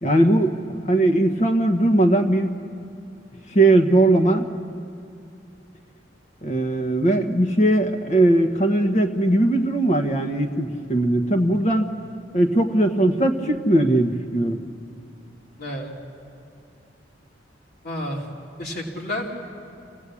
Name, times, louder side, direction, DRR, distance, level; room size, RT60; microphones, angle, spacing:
voice 1, 0.0-0.5 0.9-2.5 3.5-4.5 6.4-11.9 12.3-14.6, right 1 dB, 40° left, 5 dB, 1.4 m, -19 dB
voice 2, 15.6-15.9 17.8-18.2 18.6-19.4, left 1 dB, 60° left, -1 dB, 2.7 m, -30 dB
25.0 x 16.5 x 8.5 m, 2.5 s
head